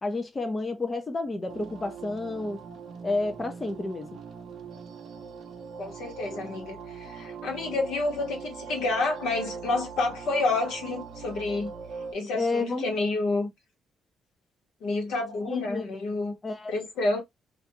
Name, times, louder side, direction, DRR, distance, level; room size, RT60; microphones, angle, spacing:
voice 1, 0.0-2.6 3.0-4.1 12.3-12.9 15.5-15.8 16.4-16.7, left 2 dB, 25° left, 0.4 m, -30 dB
sound 1, 1.5-12.1, right 5 dB, 65° right, 0.6 m, -41 dB
voice 2, 5.8-11.7 12.1-13.5 14.8-16.3 16.7-17.2, left 3 dB, 85° left, 1.1 m, -29 dB
2.4 x 2.3 x 2.7 m
cardioid pair, 90°, 0 cm